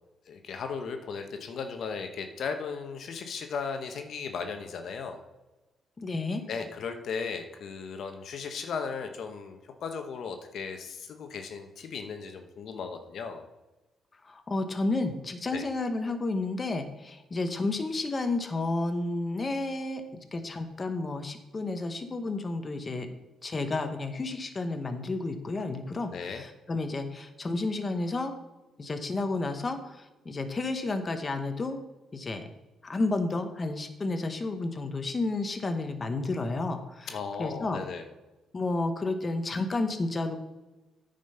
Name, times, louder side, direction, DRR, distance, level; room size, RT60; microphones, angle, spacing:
voice 1, 0.3-5.2 6.5-13.4 15.5-15.7 26.1-26.5 37.1-38.0, left 5 dB, 65° left, 6 dB, 1.0 m, -36 dB
voice 2, 6.0-6.4 14.2-20.0 20.3-23.2 23.4-28.3 28.8-31.8 32.1-32.5 32.8-37.1 37.4-37.8 38.5-40.4, left 2 dB, 30° left, 7 dB, 1.0 m, -31 dB
9.3 x 5.2 x 5.6 m, 1.1 s
cardioid pair, 90°, 0 cm